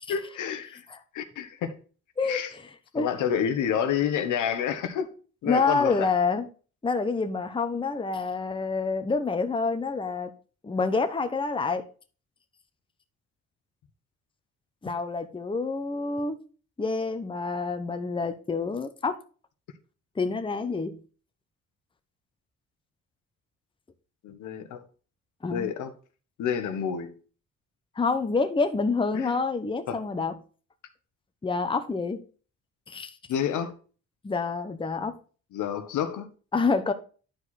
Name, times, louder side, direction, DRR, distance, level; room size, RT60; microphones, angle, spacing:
voice 1, 0.1-0.8 1.1-1.7 2.2-2.5 3.0-5.1 5.4-6.1 24.2-24.8 25.5-25.9 26.4-27.1 29.1-29.3 29.9-30.0 33.3-33.7 35.5-36.3, left 8 dB, 80° left, 1.2 m, -29 dB
voice 2, 2.2-2.6 2.9-3.1 5.4-6.5 6.8-10.3 10.6-11.8 14.8-16.4 16.8-19.2 20.2-21.0 25.4-25.7 28.0-30.4 31.4-32.2 32.9-33.1 34.2-35.1 36.5-36.9, left 4 dB, 15° left, 0.9 m, -27 dB
10.0 x 4.9 x 4.2 m
cardioid pair, 90°, 30 cm